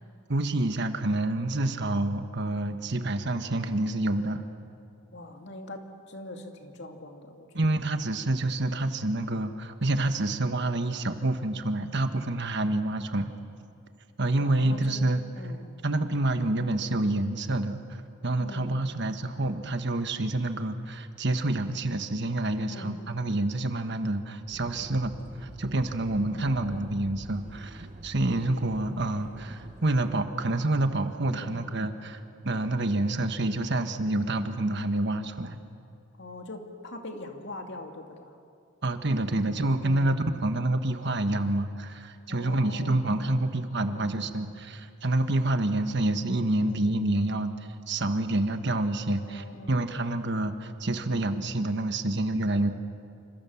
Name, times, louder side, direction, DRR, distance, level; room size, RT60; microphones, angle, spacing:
voice 1, 0.3-4.4 7.5-13.3 14.2-15.2 15.8-17.8 18.2-25.1 25.4-35.6 38.8-47.5 47.9-52.7, right 2 dB, 55° right, 7 dB, 1.4 m, -28 dB
voice 2, 5.1-5.8 6.1-7.5 14.4-15.7 18.4-18.8 22.7-23.0 26.1-26.9 31.3-31.6 36.2-38.4 39.3-39.5 39.8-40.2 42.3-43.6 43.9-44.1 46.6-47.0 49.1-49.8, left 2 dB, 55° left, 4 dB, 2.5 m, -43 dB
sound 1, 24.5-30.1, equal, 40° right, 1.8 m, -45 dB
28.5 x 26.5 x 7.2 m, 2.4 s
head